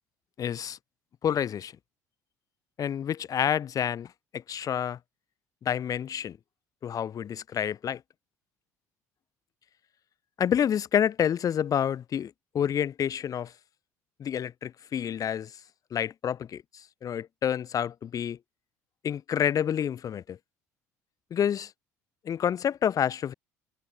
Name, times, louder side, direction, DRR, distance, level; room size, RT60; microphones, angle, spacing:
voice 1, 0.4-0.8 1.2-1.7 2.8-4.1 4.3-5.0 5.6-6.4 6.8-8.0 10.4-13.5 14.2-15.5 15.9-18.4 19.0-20.4 21.3-21.7 22.3-23.3, left 9 dB, 45° left, 7.0 m, -28 dB
hypercardioid pair, 60°, 8 cm